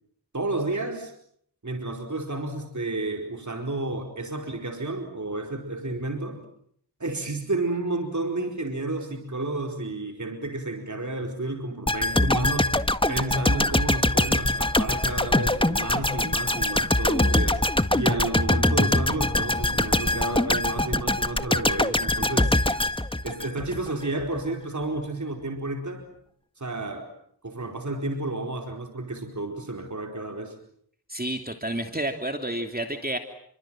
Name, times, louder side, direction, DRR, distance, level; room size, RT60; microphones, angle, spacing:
voice 1, 0.3-1.1 1.6-6.4 7.0-12.8 13.1-17.7 17.9-22.7 23.2-26.1 26.6-27.1 27.4-30.6, right 2 dB, 45° right, 3 dB, 4.7 m, -31 dB
sound 1, 11.9-23.9 24.2-24.3, left 1 dB, 15° left, 1.7 m, -23 dB
voice 2, 31.1-33.2, right 1 dB, 20° right, 5 dB, 3.0 m, -30 dB
29.5 x 25.0 x 7.7 m, 0.67 s
cardioid pair, 40°, 40 cm